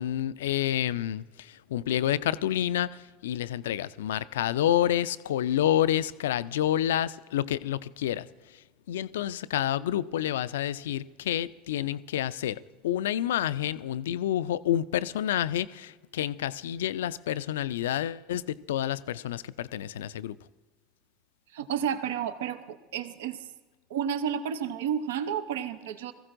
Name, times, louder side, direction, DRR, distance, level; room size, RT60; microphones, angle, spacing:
voice 1, 0.0-20.4, left 11 dB, 75° left, 0.4 m, -29 dB
voice 2, 21.5-23.4 23.9-26.1, right 8 dB, 75° right, 0.6 m, -31 dB
21.5 x 15.0 x 2.6 m
hypercardioid pair, 75°, 0 cm